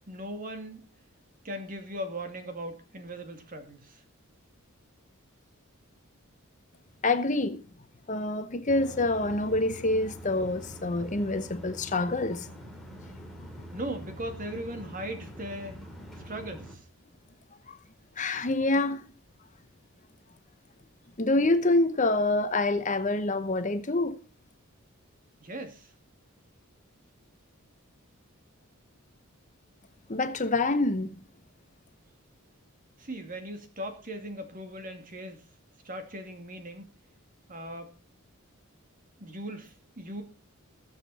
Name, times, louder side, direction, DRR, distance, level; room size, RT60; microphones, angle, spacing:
voice 1, 0.1-0.9 1.4-4.0 13.7-15.8 16.2-16.8 25.4-25.9 33.0-35.4 35.8-36.9 37.5-37.9 39.2-40.2, right 1 dB, 40° right, 2.4 m, -38 dB
voice 2, 7.0-7.6 8.1-12.5 17.7-17.8 18.2-19.0 21.2-24.2 30.1-31.2, left 2 dB, 35° left, 0.9 m, -26 dB
sound 1, 8.7-16.7, equal, ahead, 2.9 m, -45 dB
21.0 x 7.5 x 4.2 m
head